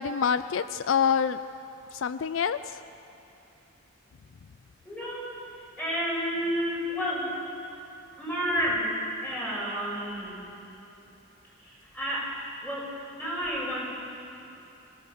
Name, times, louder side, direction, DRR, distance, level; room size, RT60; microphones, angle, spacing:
voice 1, 0.0-1.4 1.9-2.6, left 7 dB, 70° left, 13 dB, 0.4 m, -26 dB
voice 2, 4.8-5.4 5.8-7.4 8.2-10.4 11.6-13.9, equal, 10° left, -6 dB, 5.7 m, -31 dB
26.0 x 14.5 x 6.8 m, 2.9 s
head